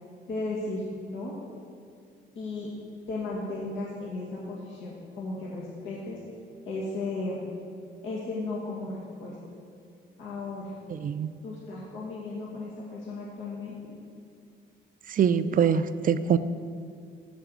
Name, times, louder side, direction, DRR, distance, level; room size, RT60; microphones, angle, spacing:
voice 1, 0.3-1.3 2.4-2.7 3.1-6.2 6.7-7.4 8.0-9.4 10.2-10.7 11.4-13.8, left 2 dB, 75° left, -5 dB, 2.0 m, -35 dB
voice 2, 10.9-11.3 15.1-16.4, right 8 dB, 45° right, 13 dB, 0.5 m, -24 dB
7.1 x 6.9 x 7.6 m, 2.3 s
cardioid pair, 90°, 20 cm